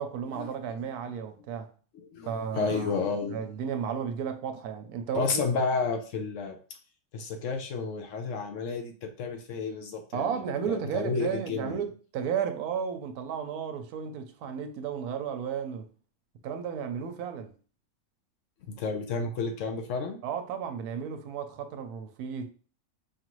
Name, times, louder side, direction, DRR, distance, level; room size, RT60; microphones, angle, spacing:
voice 1, 0.0-1.7 2.3-3.0 3.3-5.5 10.1-15.9 16.4-17.5 20.2-22.5, right 7 dB, 90° right, 1.1 m, -33 dB
voice 2, 1.9-3.4 5.1-6.6 7.1-10.4 10.7-11.8 18.7-20.2, left 4 dB, 65° left, 0.9 m, -31 dB
5.1 x 2.5 x 3.0 m
omnidirectional pair, 1.6 m